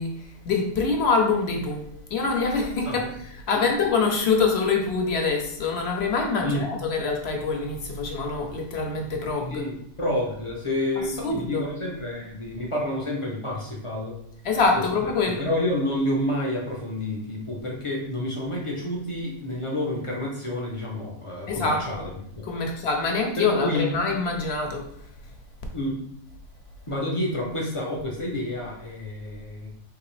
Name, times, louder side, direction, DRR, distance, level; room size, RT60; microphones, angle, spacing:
voice 1, 0.0-9.7 11.0-11.7 14.4-15.4 21.5-22.0 22.4-24.9, left 4 dB, 60° left, 2 dB, 0.8 m, -25 dB
voice 2, 9.5-14.2 15.4-22.1 22.4-22.7 23.4-23.9 25.7-26.0 26.9-29.7, left 1 dB, 40° left, -2 dB, 0.4 m, -29 dB
3.8 x 2.8 x 3.1 m, 0.71 s
omnidirectional pair, 1.5 m